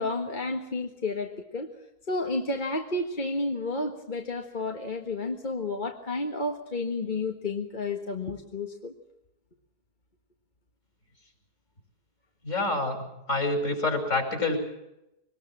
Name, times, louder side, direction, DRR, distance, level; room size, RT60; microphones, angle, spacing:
voice 1, 0.0-1.7 2.1-8.9, left 2 dB, 30° left, 3 dB, 1.7 m, -31 dB
voice 2, 12.4-14.6, left 2 dB, 50° left, 4 dB, 6.0 m, -27 dB
24.5 x 20.0 x 7.5 m, 0.88 s
omnidirectional pair, 1.7 m